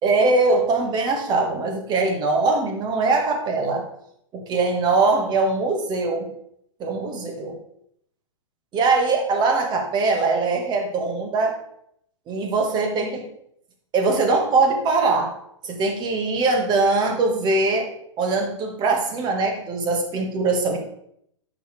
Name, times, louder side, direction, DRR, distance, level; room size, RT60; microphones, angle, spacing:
voice 1, 0.0-3.8 4.3-6.3 6.8-7.6 8.7-11.6 12.3-13.3 13.9-15.3 15.6-17.9 18.2-20.8, right 3 dB, 25° right, 3 dB, 1.7 m, -22 dB
10.0 x 6.6 x 3.3 m, 0.73 s
figure-of-eight pair, 110°, 17 cm